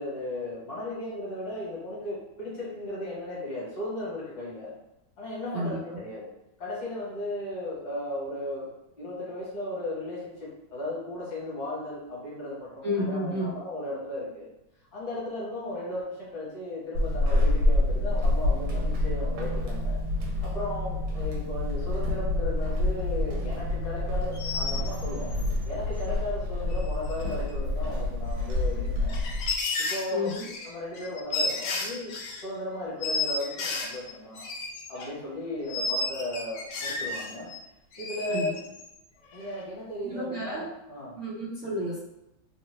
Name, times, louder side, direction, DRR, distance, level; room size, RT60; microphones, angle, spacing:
voice 1, 0.0-4.7 5.2-6.3 6.6-8.7 9.0-14.5 14.9-20.0 20.4-25.3 25.6-29.2 29.9-30.3 30.6-32.1 32.4-34.4 34.9-37.5 38.0-38.5 39.3-41.1, left 1 dB, 55° left, -7 dB, 1.4 m, -35 dB
voice 2, 5.5-6.0 12.8-13.5 30.1-30.4 38.3-38.5 40.0-40.6 41.2-42.0, left 1 dB, 60° right, -10 dB, 0.9 m, -31 dB
Walk footsteps / Squeak, 16.9-29.6, left 1 dB, 80° right, 1.4 m, -27 dB
sound 1, 24.3-25.5 26.8-26.9 27.1-27.5 27.8-27.9 28.8-32.4 33.0-35.1 35.7-37.6 37.9-39.0 39.3-39.6, left 3 dB, 80° left, 0.9 m, -32 dB
3.3 x 2.1 x 3.1 m, 0.89 s
omnidirectional pair, 2.3 m